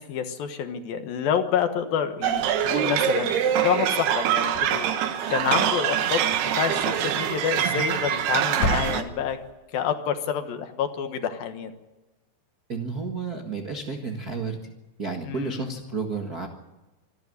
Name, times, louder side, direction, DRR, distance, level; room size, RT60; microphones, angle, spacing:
voice 1, 0.0-4.9 5.3-6.2 6.6-9.4 9.7-11.7 15.2-15.7, left 8 dB, 65° left, 8 dB, 2.9 m, -28 dB
sound 1, 2.2-9.0, right 9 dB, 75° right, 3.3 m, -24 dB
sound 2, 4.4-5.6 6.0-6.7 7.7-8.2 8.5-9.4, left 1 dB, 45° left, 3.9 m, -32 dB
voice 2, 12.7-14.6 15.0-16.5, right 4 dB, 50° right, 4 dB, 1.0 m, -31 dB
26.0 x 12.0 x 9.7 m, 1.1 s
omnidirectional pair, 4.7 m